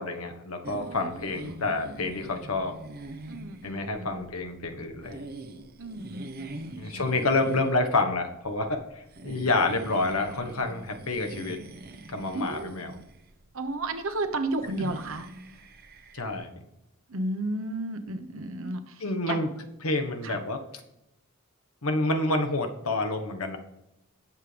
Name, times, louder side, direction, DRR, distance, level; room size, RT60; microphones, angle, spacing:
voice 1, 0.0-2.7 3.6-5.2 6.8-8.8 9.2-11.6 12.1-13.0 14.8-14.9 16.1-16.6 19.0-19.5 19.8-20.6 21.8-23.6, left 2 dB, 85° left, 5 dB, 1.4 m, -28 dB
sound 1, 0.6-16.4, right 2 dB, 45° right, 1.0 m, -44 dB
voice 2, 0.8-1.1 3.2-4.2 5.8-7.0 12.3-12.8 13.5-15.3 17.1-19.4 20.2-20.4, right 2 dB, 65° right, 7 dB, 1.1 m, -33 dB
19.0 x 7.6 x 3.4 m, 0.91 s
head